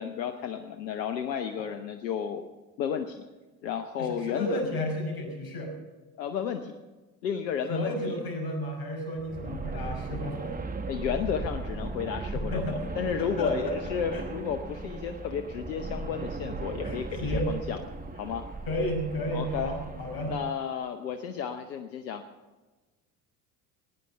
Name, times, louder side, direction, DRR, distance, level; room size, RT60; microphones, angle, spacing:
voice 1, 0.0-2.4 2.8-3.2 3.6-4.6 6.2-6.8 7.2-8.1 10.9-17.8 18.2-18.4 19.3-19.7 20.3-22.2, left 7 dB, 80° left, 7 dB, 0.9 m, -32 dB
voice 2, 4.0-5.7 7.7-10.6 12.3-12.8 13.2-14.2 16.8-17.5 18.7-20.4, equal, 50° left, 2 dB, 5.7 m, -33 dB
sound 1, 9.2-20.5, right 3 dB, 15° right, 1.3 m, -37 dB
18.0 x 9.8 x 5.8 m, 1.2 s
hypercardioid pair, 60°, 48 cm